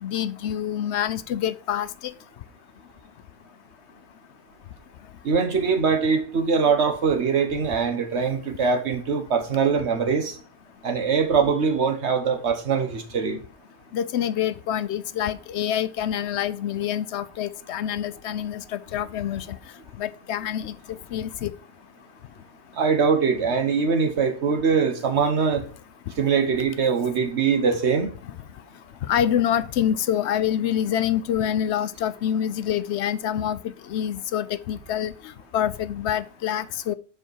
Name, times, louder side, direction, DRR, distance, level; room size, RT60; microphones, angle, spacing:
voice 1, 0.0-1.9 13.9-19.6 20.0-21.5 29.1-35.1 35.5-36.9, left 10 dB, 80° left, 0.9 m, -26 dB
voice 2, 5.2-10.3 10.8-13.4 22.7-25.6 26.2-28.1, right 5 dB, 80° right, 1.5 m, -22 dB
7.7 x 5.1 x 4.7 m
omnidirectional pair, 1.1 m